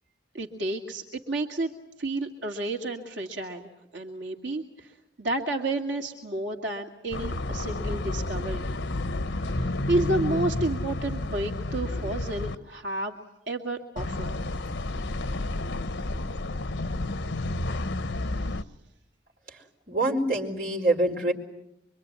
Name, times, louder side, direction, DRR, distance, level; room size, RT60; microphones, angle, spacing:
voice 1, 0.3-1.7 2.0-8.7 9.4-13.2 13.5-14.5 18.4-18.6, right 2 dB, 80° right, 2 dB, 2.2 m, -31 dB
sound 1, 7.1-12.6 14.0-18.6, left 2 dB, 80° left, 1.0 m, -31 dB
voice 2, 19.9-21.3, right 2 dB, 45° right, 1 dB, 4.6 m, -25 dB
24.5 x 24.5 x 9.5 m, 0.82 s
head